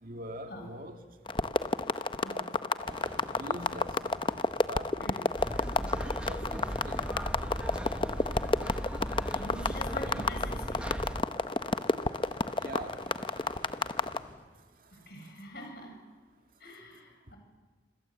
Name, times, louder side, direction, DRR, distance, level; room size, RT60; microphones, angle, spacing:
voice 1, 0.0-1.0 2.3-3.0 3.3-3.9 4.7-4.9 6.1-7.0 12.6-13.0, right 1 dB, 50° right, 2.2 m, -43 dB
sound 1, 1.3-14.2, left 3 dB, 25° left, 0.7 m, -30 dB
sound 2, 2.8-14.4, equal, 25° right, 7.1 m, -51 dB
sound 3, 5.4-11.2, equal, 5° right, 1.0 m, -37 dB
voice 2, 9.3-10.9 14.9-16.0 16.6-17.4, equal, 55° left, 7.8 m, -44 dB
27.0 x 25.5 x 8.0 m
head